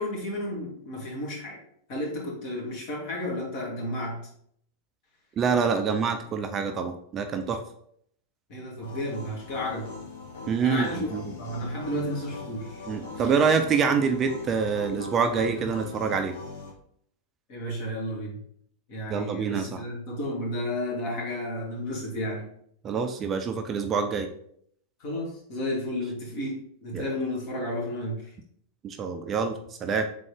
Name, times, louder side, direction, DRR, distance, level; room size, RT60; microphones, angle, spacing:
voice 1, 0.0-1.6 1.9-4.2 8.5-9.9 10.6-11.1 11.4-12.8 13.2-13.3 17.5-18.4 18.9-22.5 25.0-28.3, left 1 dB, 45° left, -3 dB, 1.8 m, -32 dB
voice 2, 5.4-7.6 10.5-11.2 12.9-16.4 19.1-19.8 22.8-24.3 26.9-27.1 28.8-30.1, right 5 dB, 25° right, 6 dB, 0.4 m, -26 dB
sound 1, 8.8-16.7, left 3 dB, 65° left, 1.8 m, -41 dB
3.8 x 3.7 x 3.6 m, 0.67 s
figure-of-eight pair, 90°, 0 cm